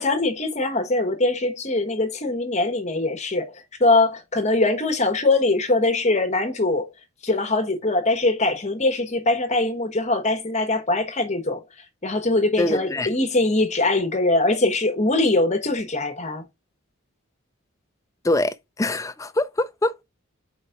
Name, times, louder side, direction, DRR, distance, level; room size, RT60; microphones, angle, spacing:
voice 1, 0.0-6.9 7.2-11.6 12.0-16.4, left 2 dB, 35° left, 1.2 m, -22 dB
voice 2, 12.6-13.1 18.2-20.0, left 1 dB, 15° left, 0.4 m, -24 dB
4.7 x 3.9 x 5.7 m
head